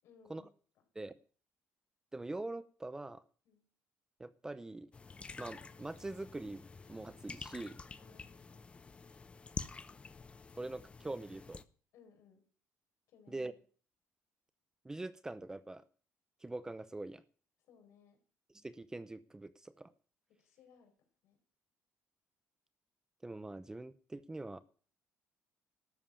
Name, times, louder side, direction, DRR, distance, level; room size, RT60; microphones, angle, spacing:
voice 1, 0.0-0.8 3.4-3.7 8.0-8.7 11.9-12.5 13.1-13.5 17.6-18.2 20.3-21.4, left 6 dB, 70° left, 5 dB, 4.6 m, -64 dB
voice 2, 2.1-3.2 4.2-4.9 5.4-7.8 10.6-11.6 13.3-13.5 14.8-15.8 16.4-17.2 18.6-19.9 23.2-24.6, right 2 dB, 10° right, 15 dB, 0.7 m, -43 dB
sound 1, 4.9-11.6, left 4 dB, 20° left, 0.7 m, -48 dB
13.0 x 7.3 x 8.5 m, 0.42 s
cardioid pair, 130°, 5 cm